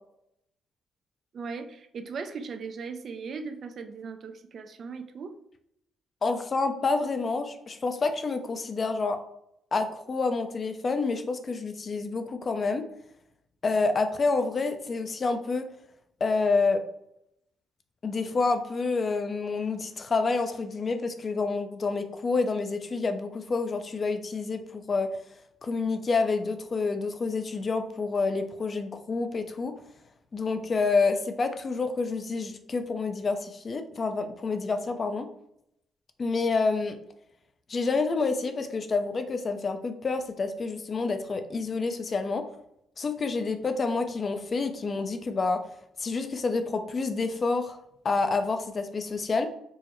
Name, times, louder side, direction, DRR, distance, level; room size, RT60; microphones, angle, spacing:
voice 1, 1.3-5.4, right 5 dB, 55° right, 8 dB, 0.4 m, -38 dB
voice 2, 6.2-9.2 9.7-12.8 13.6-15.6 16.2-16.8 18.0-25.1 25.6-29.7 30.3-35.3 36.2-37.0 37.7-42.4 43.0-45.6 46.0-47.8 48.0-49.5, left 4 dB, 40° left, 7 dB, 0.5 m, -28 dB
4.6 x 2.1 x 3.0 m, 0.77 s
cardioid pair, 90°, 0 cm